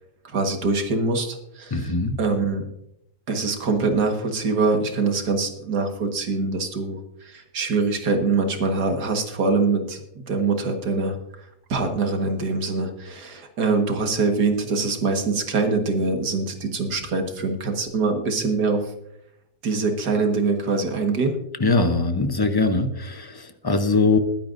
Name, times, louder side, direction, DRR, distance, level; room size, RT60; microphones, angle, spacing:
voice 1, 0.2-2.7 3.3-11.2 11.7-18.8 19.6-21.4, right 3 dB, 75° right, 4 dB, 2.1 m, -24 dB
voice 2, 1.7-2.2 21.6-24.2, left 3 dB, 30° left, 8 dB, 0.4 m, -21 dB
21.5 x 10.0 x 2.6 m, 0.79 s
omnidirectional pair, 1.8 m